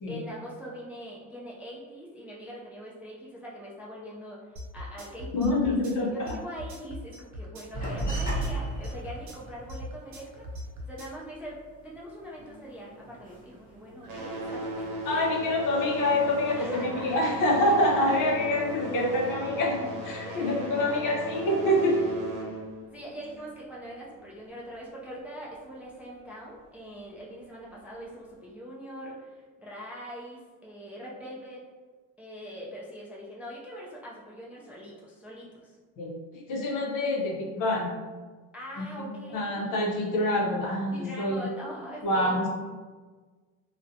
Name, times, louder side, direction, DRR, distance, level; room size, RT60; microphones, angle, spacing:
voice 1, 0.1-10.5 10.9-14.8 15.1-15.3 16.6-17.1 20.2-20.5 22.9-31.6 32.2-35.8 38.5-39.8 40.9-42.4, equal, 5° right, -5 dB, 0.3 m, -42 dB
sound 1, 4.6-11.2, left 1 dB, 50° right, 0.6 m, -39 dB
voice 2, 5.3-6.1 15.0-22.0 36.0-37.9 38.8-41.5 42.0-42.5, left 1 dB, 55° left, -1 dB, 0.7 m, -26 dB
sound 2, 7.7-12.7 13.0-14.4 14.6-15.5 15.8-17.2 17.6-18.3, right 2 dB, 20° left, 0.9 m, -36 dB
sound 3, 12.2-13.6 13.9-24.2 25.0-25.1 25.8-25.9 26.5-26.6, right 1 dB, 85° right, 0.8 m, -37 dB
2.4 x 2.1 x 2.6 m, 1.4 s
supercardioid pair, 90°, 38 cm